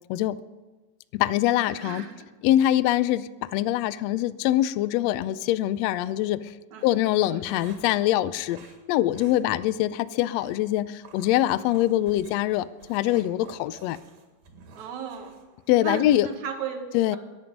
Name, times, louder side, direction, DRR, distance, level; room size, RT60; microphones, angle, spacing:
voice 1, 1.1-2.1 2.4-6.5 6.8-8.6 8.9-14.0 15.7-16.3 16.9-17.2, left 14 dB, 85° left, 16 dB, 1.5 m, -24 dB
voice 2, 1.7-2.3 6.7-6.9 7.3-7.4 9.4-9.5 14.7-15.4 15.8-17.2, right 6 dB, 70° right, 4 dB, 2.8 m, -36 dB
sound 1, 5.8-6.1 6.9-8.0 8.5-8.8 9.1-9.4 9.7-9.8 10.3-10.6 11.0-16.4, right 4 dB, 90° right, 3.4 m, -51 dB
22.0 x 9.2 x 5.2 m, 1.3 s
omnidirectional pair, 3.5 m